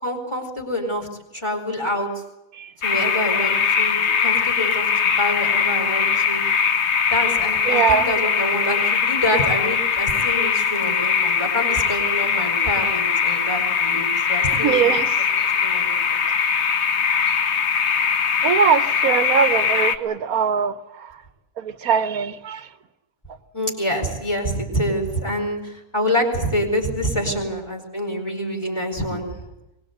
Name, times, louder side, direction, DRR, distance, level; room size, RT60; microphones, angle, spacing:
voice 1, 0.0-1.1 1.3-2.1 2.8-6.4 7.1-14.8 15.2-15.3 15.6-16.2 23.5-29.4, equal, 20° left, 3 dB, 4.5 m, -26 dB
sound 1, 2.8-20.0, left 6 dB, 50° left, 1.2 m, -21 dB
voice 2, 7.7-8.1 14.6-15.1 18.4-20.8 21.6-22.6, right 7 dB, 75° right, 12 dB, 1.5 m, -21 dB
24.0 x 21.0 x 8.1 m, 0.93 s
omnidirectional pair, 1.5 m